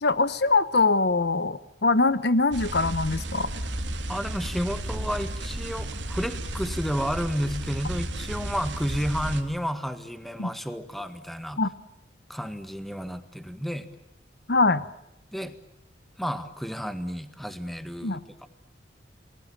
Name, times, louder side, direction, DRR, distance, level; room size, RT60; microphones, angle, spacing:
voice 1, 0.0-3.5 10.4-10.5 11.6-11.7 14.5-14.8 18.0-18.2, left 3 dB, 60° left, 14 dB, 1.0 m, -23 dB
sound 1, 2.5-9.4, right 1 dB, 85° right, 3.1 m, -33 dB
voice 2, 4.1-11.6 12.3-13.9 15.3-15.5 16.2-18.5, equal, ahead, 9 dB, 1.7 m, -31 dB
29.5 x 21.0 x 8.8 m, 0.85 s
head